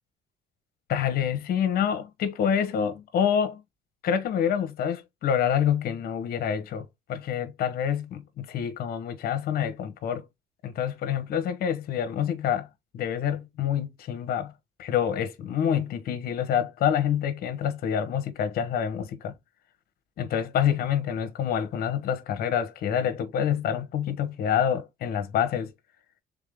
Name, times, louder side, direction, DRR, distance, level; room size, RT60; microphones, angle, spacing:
voice 1, 0.9-3.6 4.0-10.2 10.6-12.7 12.9-14.5 14.8-19.3 20.2-25.7, left 9 dB, 65° left, 1.0 m, -27 dB
3.7 x 3.6 x 3.5 m
cardioid pair, 110°, 17 cm